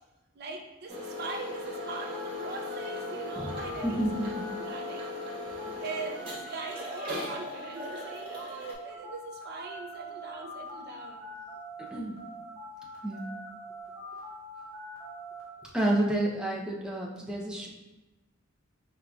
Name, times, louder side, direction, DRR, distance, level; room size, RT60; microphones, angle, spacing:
voice 1, 0.3-4.1 4.6-5.2 5.6-11.2, right 3 dB, 50° right, 2 dB, 0.5 m, -41 dB
sound 1, 0.9-8.7, left 3 dB, 25° right, 1.3 m, -39 dB
sound 2, 1.7-11.9 12.2-15.4, equal, 15° left, 1.1 m, -43 dB
voice 2, 3.8-4.3 11.9-12.2 13.0-13.2 15.7-17.7, right 1 dB, 5° right, -3 dB, 0.5 m, -29 dB
4.6 x 3.7 x 2.3 m, 1.1 s
head